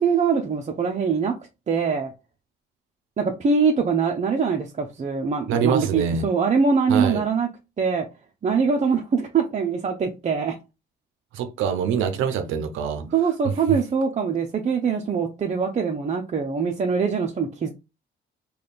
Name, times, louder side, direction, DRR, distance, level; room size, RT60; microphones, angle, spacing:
voice 1, 0.0-1.3 1.7-2.1 3.2-7.5 7.8-8.1 8.4-10.5 13.1-17.7, right 5 dB, 35° right, 0.6 m, -23 dB
voice 2, 5.5-6.2 6.9-7.2 11.3-13.1, right 7 dB, 90° right, 0.5 m, -24 dB
3.3 x 2.3 x 4.1 m
cardioid pair, 90°, 20 cm